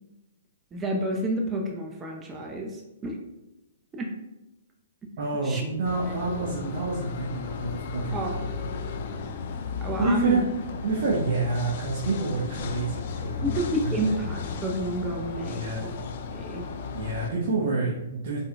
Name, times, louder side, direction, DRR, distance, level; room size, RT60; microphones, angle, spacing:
voice 1, 0.7-3.2 3.9-4.1 5.4-5.6 8.1-8.4 9.8-10.4 13.4-16.0 16.3-16.6, right 1 dB, 15° right, 1 dB, 0.6 m, -29 dB
voice 2, 5.2-8.5 10.0-10.4 10.8-13.9 15.4-15.9 16.9-18.4, right 3 dB, 55° right, -4 dB, 1.0 m, -28 dB
sound 1, 5.8-17.3, left 5 dB, 55° left, 0.5 m, -35 dB
5.4 x 3.8 x 2.3 m, 0.96 s
hypercardioid pair, 125°, 0 cm